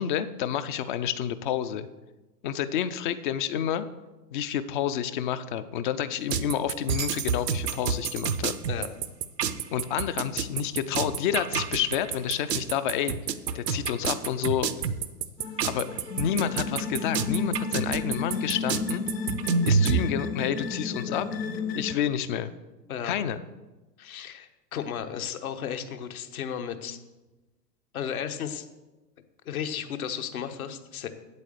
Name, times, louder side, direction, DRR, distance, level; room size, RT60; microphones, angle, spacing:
voice 1, 0.0-1.9 2.4-3.9 4.3-8.5 9.7-13.2 13.5-14.7 15.6-15.9 16.2-19.0 19.6-21.3 21.7-22.5 23.0-23.4, left 9 dB, 30° left, 13 dB, 0.5 m, -29 dB
sound 1, 6.3-20.0, right 6 dB, 75° right, 0.8 m, -28 dB
sound 2, 15.4-21.9, left 4 dB, 80° left, 1.0 m, -33 dB
voice 2, 24.0-27.0 27.9-28.7 29.4-31.1, left 8 dB, 60° left, 8 dB, 1.2 m, -34 dB
8.7 x 8.2 x 6.6 m, 1.1 s
figure-of-eight pair, 105°, 50 cm